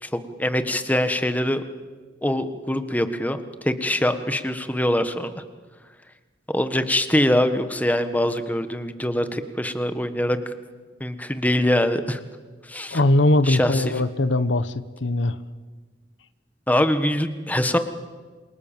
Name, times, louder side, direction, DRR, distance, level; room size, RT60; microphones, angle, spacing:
voice 1, 0.0-1.6 2.2-5.4 6.5-10.5 11.0-12.2 12.7-13.0 13.4-13.9 16.7-17.8, left 1 dB, 10° left, 9 dB, 1.5 m, -23 dB
voice 2, 12.9-14.7 15.0-15.4, left 2 dB, 85° left, 13 dB, 1.1 m, -20 dB
28.0 x 26.5 x 7.5 m, 1.4 s
head